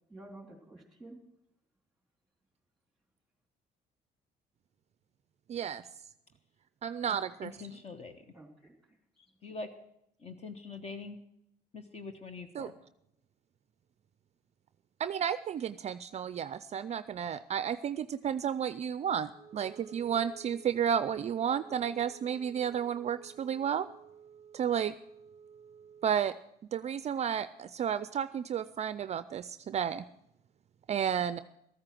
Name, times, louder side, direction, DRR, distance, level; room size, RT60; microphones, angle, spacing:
voice 1, 0.1-1.2 8.3-9.3, right 2 dB, ahead, 4 dB, 3.2 m, -52 dB
voice 2, 5.5-5.8 6.8-7.5 12.5-12.7 15.0-23.9 24.5-24.9 26.0-26.3 26.7-30.0 30.9-31.4, right 8 dB, 40° right, 14 dB, 0.4 m, -32 dB
voice 3, 7.4-8.2 9.4-9.7 10.2-11.2 11.7-12.7, left 4 dB, 40° left, 8 dB, 1.3 m, -43 dB
Wind instrument woodwind instrument, 19.3-26.4, right 6 dB, 20° right, 1.3 m, -54 dB
14.0 x 8.8 x 7.6 m, 0.77 s
cardioid pair, 110°, 17 cm